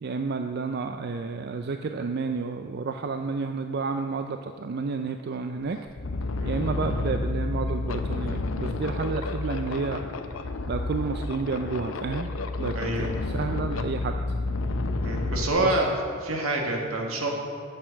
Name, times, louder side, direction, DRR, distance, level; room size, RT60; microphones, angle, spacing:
voice 1, 0.0-5.9 6.4-10.0 10.7-12.3 12.6-14.1 15.6-15.8, right 4 dB, 50° right, 6 dB, 0.4 m, -31 dB
sound 1, 5.1-5.2 5.6-15.5, left 2 dB, 70° left, 0.6 m, -30 dB
voice 2, 12.8-13.1 15.0-15.9 16.2-17.3, right 2 dB, 80° right, 0 dB, 1.8 m, -27 dB
9.1 x 6.6 x 7.6 m, 2.3 s
head